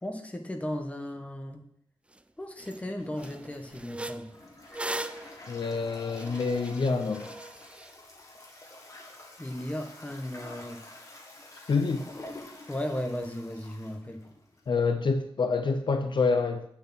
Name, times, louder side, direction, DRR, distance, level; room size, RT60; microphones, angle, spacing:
voice 1, 0.0-1.7 2.4-4.3 9.4-10.8 12.7-14.3, left 1 dB, 15° left, 4 dB, 1.3 m, -36 dB
sound 1, 2.1-2.2 2.6-2.8 3.2-7.9, right 1 dB, 10° right, 0.4 m, -40 dB
Toilet flush, 3.0-14.8, left 2 dB, 35° left, 1.9 m, -48 dB
voice 2, 5.5-7.3 11.7-12.0 14.7-16.7, left 4 dB, 55° left, 7 dB, 0.7 m, -27 dB
8.5 x 7.2 x 5.9 m, 0.69 s
wide cardioid pair, 140°, 10 cm